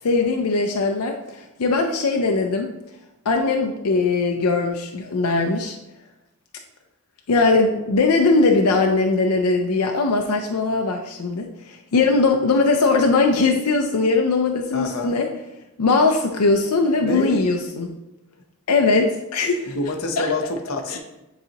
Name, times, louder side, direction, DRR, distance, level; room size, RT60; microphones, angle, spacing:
voice 1, 0.0-2.7 3.3-5.8 7.3-15.3 15.8-17.9 18.7-19.8 20.2-20.3 20.9-21.0, left 3 dB, 90° left, 3 dB, 0.5 m, -20 dB
voice 2, 14.7-15.2 17.0-17.5 19.7-21.0, left 2 dB, 65° left, 3 dB, 0.8 m, -26 dB
9.3 x 4.0 x 2.9 m, 0.96 s
head